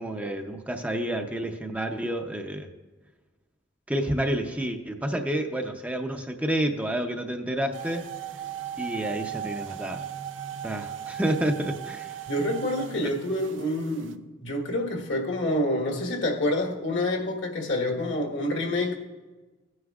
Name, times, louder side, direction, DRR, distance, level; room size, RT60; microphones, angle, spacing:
voice 1, 0.0-2.7 3.9-8.0 8.8-10.0 10.6-12.2 13.0-13.1, right 1 dB, 10° right, 0.6 m, -29 dB
sound 1, 7.7-14.1, right 10 dB, 90° right, 0.5 m, -37 dB
voice 2, 12.3-19.0, left 1 dB, 75° left, 1.5 m, -27 dB
16.0 x 9.6 x 2.4 m
head